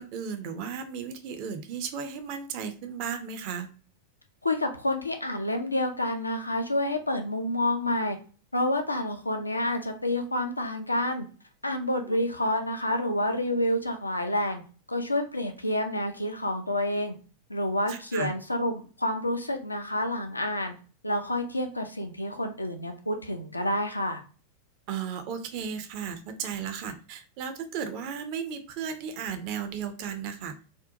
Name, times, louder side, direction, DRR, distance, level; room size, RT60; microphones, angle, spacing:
voice 1, 0.0-3.7 12.1-12.2 17.9-18.3 24.9-30.7, right 7 dB, 45° right, 8 dB, 0.4 m, -35 dB
voice 2, 4.4-8.2 8.5-11.2 11.6-14.6 14.9-17.1 17.5-20.7 21.0-24.2, left 1 dB, 85° left, 5 dB, 0.3 m, -28 dB
2.6 x 2.1 x 2.5 m, 0.38 s
figure-of-eight pair, 90°, 0 cm